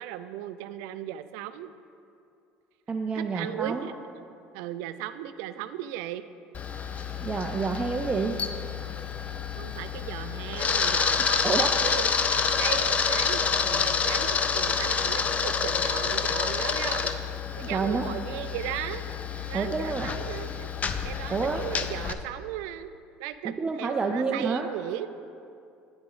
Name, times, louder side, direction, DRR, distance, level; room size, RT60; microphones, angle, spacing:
voice 1, 0.0-1.7 3.1-3.9 4.5-6.2 9.6-12.3 12.6-17.1 17.6-19.1 19.5-20.7 21.0-22.9 23.2-25.1, right 12 dB, 85° right, 12 dB, 0.3 m, -36 dB
voice 2, 2.9-3.9 7.2-8.4 11.4-11.7 17.7-18.1 19.5-20.1 21.3-21.6 23.6-24.7, right 4 dB, 25° right, 2 dB, 0.4 m, -28 dB
Camera, 6.5-22.1, left 6 dB, 30° left, 0.4 m, -28 dB
8.9 x 7.1 x 3.9 m, 2.5 s
cardioid pair, 110°, 5 cm